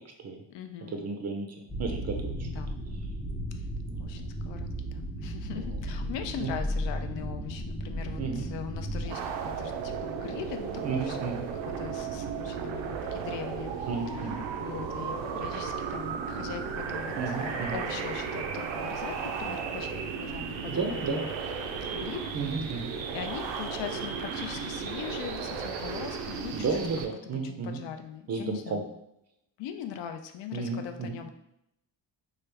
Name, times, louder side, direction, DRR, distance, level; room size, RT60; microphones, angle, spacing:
voice 1, 0.5-1.0 2.4-2.8 3.5-3.7 4.0-11.5 11.8-21.3 21.6-22.8 23.1-28.9 29.6-31.3, left 9 dB, 70° left, 6 dB, 0.5 m, -41 dB
voice 2, 1.0-2.5 3.9-4.1 5.5-5.6 6.4-6.6 8.2-8.5 10.8-11.5 13.9-14.4 17.2-17.8 20.7-21.2 22.3-22.9 26.5-27.8 28.3-28.8 30.5-31.2, right 4 dB, 35° right, 3 dB, 0.5 m, -33 dB
sound 1, 1.7-9.1, equal, 10° left, 0.6 m, -35 dB
sound 2, 9.0-27.0, right 6 dB, 85° right, 0.5 m, -35 dB
3.1 x 2.3 x 3.3 m, 0.80 s
cardioid pair, 120°, 45 cm